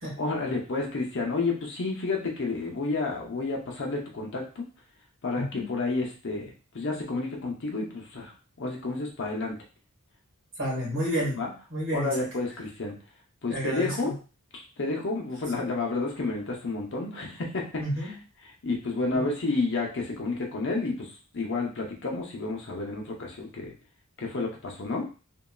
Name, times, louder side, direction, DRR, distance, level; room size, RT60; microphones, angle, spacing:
voice 1, 0.2-4.6 5.2-8.3 8.6-9.6 11.3-11.5 11.9-13.0 13.4-14.1 14.5-17.8 18.6-21.1 21.3-23.7 24.2-25.1, left 3 dB, 60° left, 0 dB, 0.8 m, -30 dB
voice 2, 5.4-5.7 10.6-11.3 11.7-12.3 13.5-14.1 17.8-18.2 19.1-19.3, right 1 dB, 65° right, -4 dB, 1.6 m, -30 dB
3.0 x 2.7 x 2.3 m, 0.34 s
head